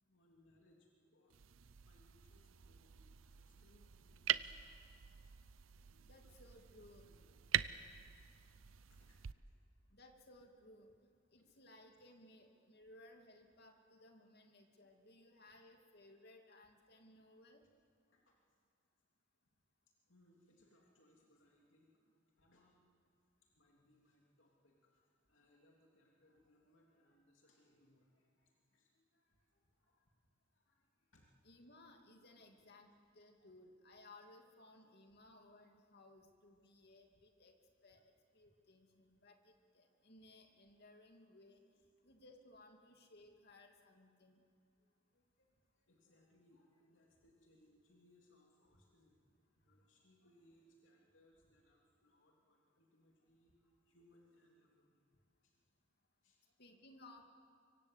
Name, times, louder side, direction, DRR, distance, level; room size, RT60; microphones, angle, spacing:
voice 1, 0.1-4.8 5.7-6.4 7.0-7.7 8.9-9.6 11.4-11.5 18.1-18.5 19.9-22.8 23.4-30.0 30.5-31.4 32.9-33.0 33.4-33.5 44.8-49.2 49.6-55.1 55.4-55.5 56.2-56.5, left 1 dB, 70° left, -1 dB, 3.2 m, -72 dB
sound 1, 1.3-9.3, right 10 dB, 85° right, 0.6 m, -44 dB
voice 2, 6.0-7.1 9.9-10.9 11.3-17.6 31.4-32.9 33.1-37.5 37.8-41.6 42.0-44.4 56.6-57.2, left 2 dB, 55° left, 3 dB, 2.7 m, -62 dB
25.0 x 24.0 x 8.3 m, 2.2 s
head